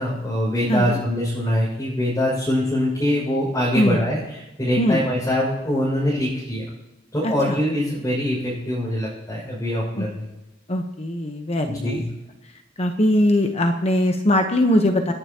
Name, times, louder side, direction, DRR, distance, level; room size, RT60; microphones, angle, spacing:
voice 1, 0.0-6.6 7.1-10.2 11.7-12.1, left 1 dB, 15° left, -8 dB, 6.2 m, -23 dB
voice 2, 0.7-1.0 3.7-4.0 4.8-5.0 7.2-7.6 10.0-10.1 10.7-12.0 12.8-15.1, left 1 dB, 35° left, 4 dB, 1.1 m, -21 dB
28.0 x 10.5 x 3.0 m, 0.99 s
head